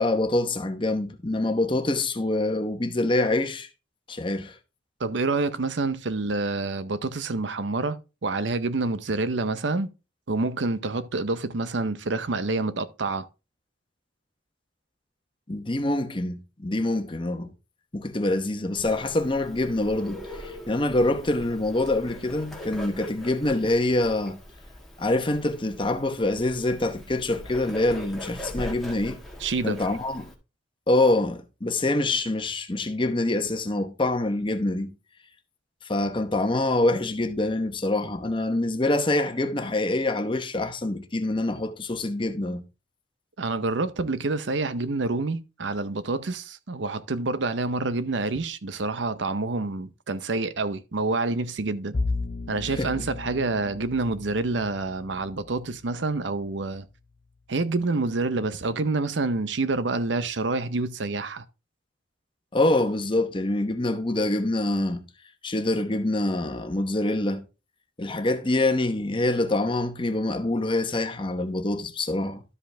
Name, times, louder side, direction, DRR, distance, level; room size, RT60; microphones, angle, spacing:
voice 1, 0.0-3.7 4.1-4.6 15.5-17.5 17.9-24.4 25.0-29.2 29.6-30.3 30.9-34.9 35.9-42.6 52.7-53.0 62.5-65.0 65.4-67.4 68.0-72.4, left 2 dB, 25° left, 1.0 m, -25 dB
voice 2, 5.0-9.9 10.3-13.3 29.4-29.8 43.4-51.9 52.5-56.8 57.5-61.4, right 3 dB, 75° right, 0.7 m, -27 dB
Bird, 18.7-30.3, equal, ahead, 1.6 m, -41 dB
Bowed string instrument, 51.9-57.0, left 3 dB, 45° left, 0.5 m, -35 dB
12.5 x 5.1 x 3.3 m
head